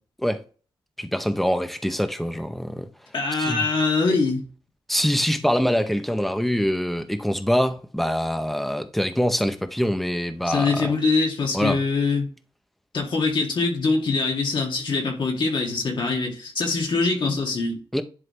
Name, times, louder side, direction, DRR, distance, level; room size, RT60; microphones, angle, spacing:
voice 1, 1.0-2.9 3.4-3.7 4.9-11.0 11.5-11.8 17.9-18.0, equal, ahead, 0.8 m, -24 dB
voice 2, 3.1-4.4 10.5-12.3 12.9-17.8, left 4 dB, 60° left, 2.4 m, -23 dB
11.0 x 3.9 x 3.3 m
wide cardioid pair, 135°, 9 cm